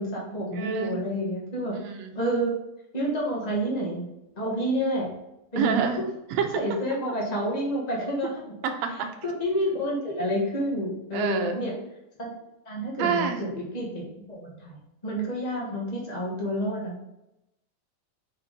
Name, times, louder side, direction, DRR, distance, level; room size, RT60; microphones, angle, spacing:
voice 1, 0.0-1.7 2.1-2.5 2.9-4.1 4.4-5.1 5.5-6.0 6.5-8.5 9.2-11.7 12.2-12.4 12.6-17.0, equal, 50° left, -3 dB, 0.4 m, -29 dB
voice 2, 0.5-0.9 1.7-2.1 5.6-6.0 6.3-6.6 8.6-9.1 11.1-11.6 13.0-13.4, right 6 dB, 70° right, 5 dB, 1.8 m, -27 dB
4.8 x 4.7 x 5.1 m, 0.89 s
omnidirectional pair, 3.4 m